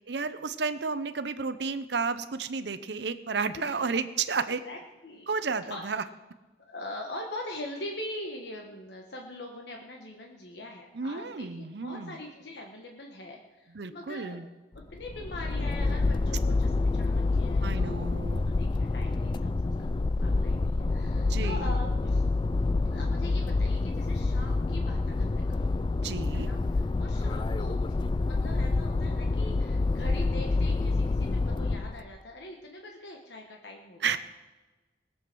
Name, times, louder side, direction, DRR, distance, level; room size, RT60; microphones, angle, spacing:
voice 1, 0.1-4.6 5.3-6.0 10.9-12.2 13.7-14.5 17.6-18.5 21.3-21.7 26.0-26.5 34.0-34.2, right 5 dB, 70° right, 12 dB, 0.7 m, -32 dB
voice 2, 4.6-5.3 5.7-5.8 6.6-14.5 14.7-22.2 22.8-25.7 26.3-26.6 27.0-34.2, left 1 dB, 70° left, 1 dB, 1.4 m, -42 dB
sound 1, 14.8-32.0, left 3 dB, 25° left, 0.3 m, -27 dB
19.5 x 7.9 x 6.1 m, 1.2 s
head